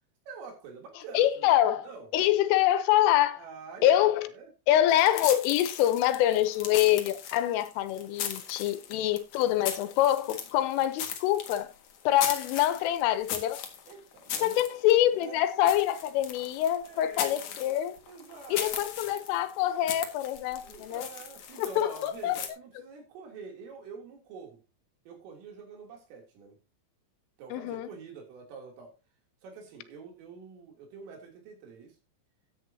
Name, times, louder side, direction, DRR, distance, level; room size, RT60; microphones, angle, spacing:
voice 1, 0.3-2.1 3.4-4.5 13.9-14.6 15.1-15.4 16.8-17.7 18.1-18.8 20.6-24.6 25.1-26.6 27.4-28.9 29.4-32.0, right 5 dB, 85° right, 5.8 m, -46 dB
voice 2, 1.2-1.9 2.1-3.4 3.8-4.3 4.7-11.7 12.1-13.6 14.4-18.0 18.5-21.1 21.6-22.4 27.5-27.9, left 12 dB, 90° left, 3.6 m, -25 dB
sound 1, 4.9-22.5, left 8 dB, 60° left, 2.2 m, -39 dB
14.0 x 9.0 x 2.8 m
omnidirectional pair, 5.6 m